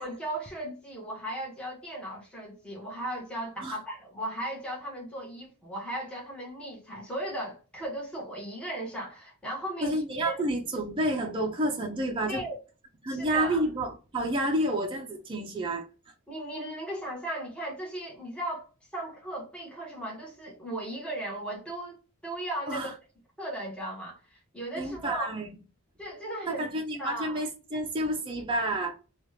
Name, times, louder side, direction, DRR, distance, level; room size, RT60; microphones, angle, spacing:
voice 1, 0.0-10.3 12.3-12.5 13.1-13.6 16.3-22.0 22.2-23.0 23.4-25.3 26.0-26.7 27.0-27.4, right 1 dB, 5° left, 1.1 m, -37 dB
voice 2, 9.8-12.4 13.0-15.9 22.7-22.9 24.8-25.6 26.5-29.0, right 1 dB, 25° right, 0.6 m, -29 dB
2.9 x 2.4 x 3.1 m
head